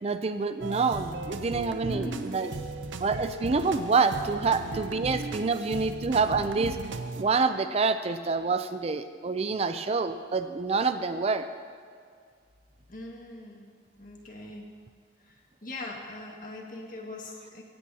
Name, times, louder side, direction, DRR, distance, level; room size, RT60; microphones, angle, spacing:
voice 1, 0.0-2.5 3.0-6.8 7.2-11.5, right 4 dB, 35° right, 9 dB, 0.4 m, -27 dB
sound 1, 0.6-7.2, right 3 dB, 80° right, 0.7 m, -37 dB
voice 2, 1.9-2.2 12.9-13.6 14.0-14.6 15.6-17.6, left 2 dB, 45° left, 0 dB, 1.9 m, -40 dB
17.0 x 16.5 x 2.8 m, 2.1 s
head